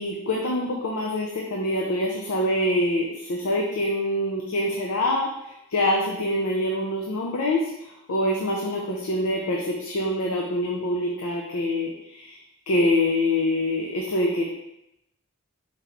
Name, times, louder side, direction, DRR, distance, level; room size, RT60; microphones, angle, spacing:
voice 1, 0.0-12.4 12.7-14.4, left 1 dB, 85° left, 0 dB, 0.5 m, -25 dB
4.5 x 2.9 x 3.8 m, 0.85 s
head